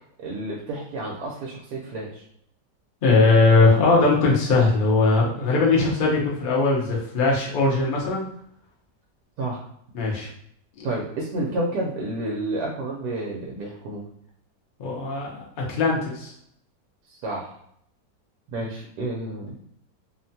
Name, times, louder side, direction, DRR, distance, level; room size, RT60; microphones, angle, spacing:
voice 1, 0.2-2.2 9.4-9.6 10.8-14.0 17.1-17.5 18.5-19.6, right 2 dB, 75° right, -2 dB, 1.1 m, -30 dB
voice 2, 3.0-8.2 9.9-10.3 10.8-10.9 14.8-16.3, left 3 dB, 85° left, -2 dB, 0.4 m, -20 dB
2.9 x 2.1 x 2.7 m, 0.68 s
omnidirectional pair, 1.8 m